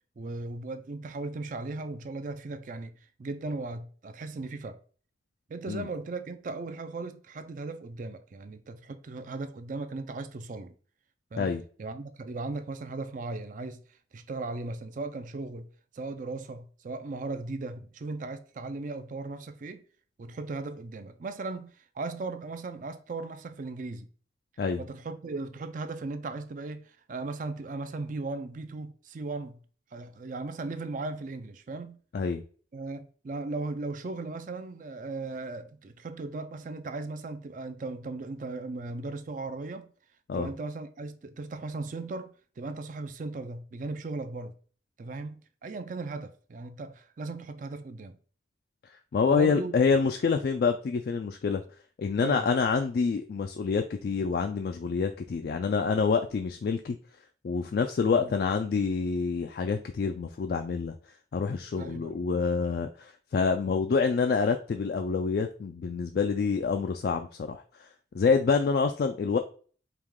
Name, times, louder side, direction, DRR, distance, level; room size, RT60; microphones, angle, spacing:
voice 1, 0.2-2.9 3.2-4.8 5.5-10.7 11.3-11.5 11.8-13.8 14.1-15.7 15.9-19.8 20.2-24.1 24.8-29.6 29.9-32.0 32.7-39.9 40.3-44.5 45.0-48.2 49.3-49.8 52.2-52.5 58.1-58.3 61.7-62.2, right 3 dB, 45° right, 0.4 m, -37 dB
voice 2, 49.1-51.6 52.0-57.0 57.4-60.9 61.3-67.9 68.1-69.4, left 5 dB, 55° left, 0.3 m, -27 dB
4.7 x 2.3 x 3.5 m
head